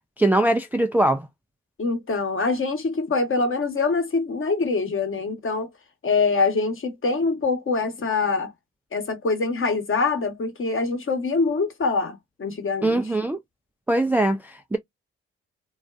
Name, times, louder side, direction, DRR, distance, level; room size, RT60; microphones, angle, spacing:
voice 1, 0.2-1.3 12.8-13.4 13.9-14.8, right 1 dB, 5° right, 0.4 m, -21 dB
voice 2, 1.8-5.7 6.0-8.5 8.9-13.1, left 4 dB, 40° left, 1.1 m, -24 dB
2.5 x 2.2 x 2.3 m
hypercardioid pair, 45°, 33 cm